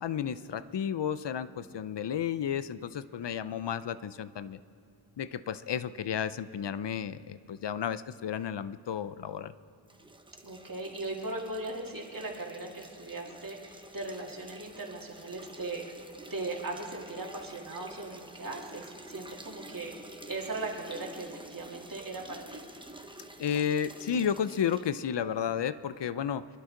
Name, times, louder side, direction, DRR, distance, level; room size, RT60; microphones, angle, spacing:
voice 1, 0.0-4.6 5.2-9.5 23.4-26.5, left 8 dB, 65° left, 15 dB, 0.6 m, -32 dB
sound 1, 9.9-25.0, right 2 dB, 10° right, 0.8 m, -49 dB
voice 2, 10.4-15.8 16.3-22.6, right 2 dB, 45° right, -1 dB, 2.1 m, -39 dB
25.5 x 11.5 x 3.8 m, 2.6 s
wide cardioid pair, 90°, 46 cm